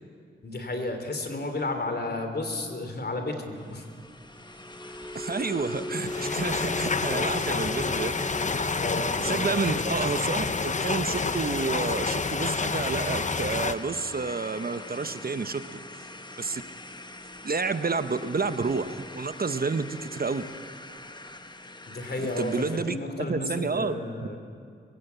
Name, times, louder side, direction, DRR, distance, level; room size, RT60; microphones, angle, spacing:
voice 1, 0.4-3.8 8.8-10.2 21.9-24.4, left 2 dB, 55° left, 5 dB, 3.3 m, -33 dB
sound 1, 3.5-22.9, left 2 dB, 20° left, 1.2 m, -44 dB
sound 2, 4.2-20.6 20.9-21.2 21.6-21.8, left 1 dB, 10° right, 1.4 m, -41 dB
voice 2, 5.1-8.1 9.2-16.1 16.4-16.6 17.4-20.4 22.2-23.0 23.3-24.0, right 4 dB, 50° right, 10 dB, 1.0 m, -30 dB
sound 3, 6.0-13.7, left 4 dB, 35° left, 0.7 m, -28 dB
22.0 x 17.0 x 8.2 m, 2.4 s
cardioid pair, 55°, 20 cm